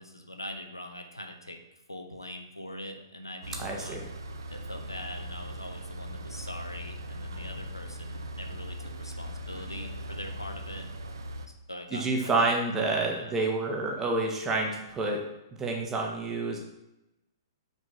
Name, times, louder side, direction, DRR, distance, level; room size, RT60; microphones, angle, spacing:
voice 1, 0.0-1.6 1.9-4.1 4.5-12.5 12.8-13.3, left 1 dB, 85° left, 4 dB, 1.3 m, -43 dB
sound 1, 3.4-11.5, equal, 65° right, 0.9 m, -39 dB
voice 2, 3.6-4.0 11.9-15.2 15.6-16.6, right 3 dB, 15° right, 0 dB, 1.7 m, -28 dB
9.4 x 4.7 x 5.8 m, 0.93 s
figure-of-eight pair, 115°, 2 cm